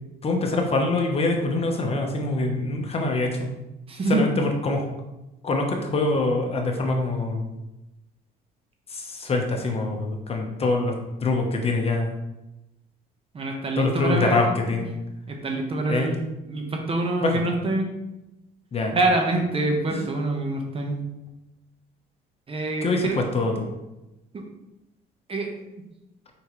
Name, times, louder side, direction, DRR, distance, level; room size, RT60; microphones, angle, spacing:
voice 1, 0.2-3.3 4.1-4.9 5.4-7.5 8.9-10.9 11.2-12.2 13.8-14.9 15.9-16.1 17.2-17.4 18.7-19.0 19.9-20.0 22.8-23.7, left 2 dB, 35° left, 2 dB, 1.1 m, -24 dB
voice 2, 3.9-4.3 13.3-14.6 15.3-17.9 18.9-21.0 22.5-23.2 24.3-24.4 25.3-25.5, right 2 dB, 35° right, 2 dB, 1.1 m, -25 dB
5.9 x 5.2 x 3.2 m, 0.95 s
cardioid pair, 110°, 17 cm